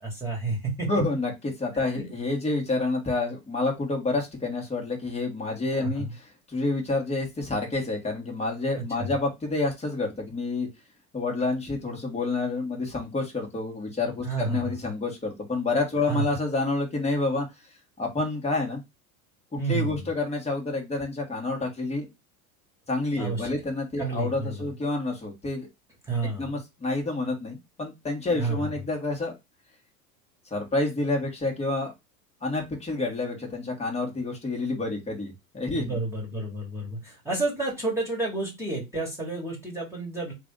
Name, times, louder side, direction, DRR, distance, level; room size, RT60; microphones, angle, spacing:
voice 1, 0.0-0.9 1.7-2.1 5.8-6.1 9.0-9.1 14.2-14.6 16.1-16.2 19.6-20.0 23.2-23.5 24.0-24.7 26.1-26.5 28.3-28.7 35.7-40.3, right 3 dB, 5° right, -2 dB, 1.9 m, -30 dB
voice 2, 0.9-10.7 11.1-17.4 18.0-18.8 19.7-22.1 22.9-25.7 26.2-29.3 30.5-31.9 32.4-36.0, left 2 dB, 15° left, 0 dB, 1.6 m, -28 dB
3.3 x 2.6 x 3.7 m, 0.21 s
hypercardioid pair, 95°, 44 cm